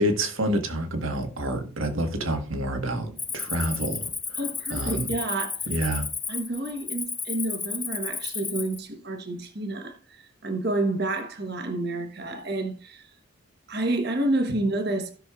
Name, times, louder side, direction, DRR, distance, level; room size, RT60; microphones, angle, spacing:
voice 1, 0.0-4.4 4.7-5.1 5.7-6.1, right 1 dB, 70° right, 1.5 m, -28 dB
Cricket, 3.2-8.8, left 5 dB, 10° left, 0.5 m, -33 dB
voice 2, 4.4-5.6 6.3-13.1 13.7-15.1, right 2 dB, 50° right, 1.2 m, -29 dB
16.5 x 6.3 x 2.4 m
head